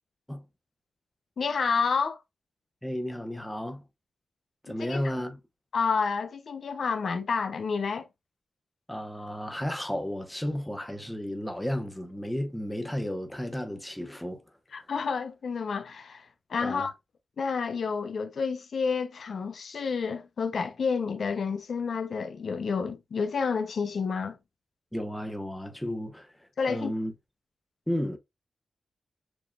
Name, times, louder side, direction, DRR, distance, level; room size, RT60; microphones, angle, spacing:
voice 1, 1.4-2.2 4.7-5.1 5.7-8.1 14.7-16.9 17.4-24.4 26.6-26.9, left 5 dB, 70° left, 0.7 m, -30 dB
voice 2, 2.8-3.8 4.6-5.4 8.9-14.4 16.6-16.9 24.9-27.1 27.9-28.2, equal, 5° left, 1.1 m, -33 dB
7.2 x 3.0 x 2.4 m
cardioid pair, 85°, 0 cm